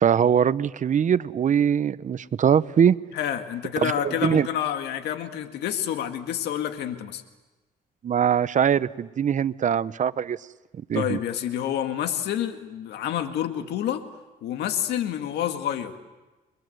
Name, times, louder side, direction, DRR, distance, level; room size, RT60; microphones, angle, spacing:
voice 1, 0.0-3.0 3.8-3.9 4.2-4.5 8.0-10.4 10.9-11.2, right 8 dB, 50° right, 16 dB, 0.8 m, -22 dB
voice 2, 3.1-7.2 10.9-14.1 14.4-16.1, left 10 dB, 90° left, 7 dB, 1.9 m, -28 dB
29.5 x 22.5 x 7.9 m, 1.1 s
cardioid pair, 85°, 17 cm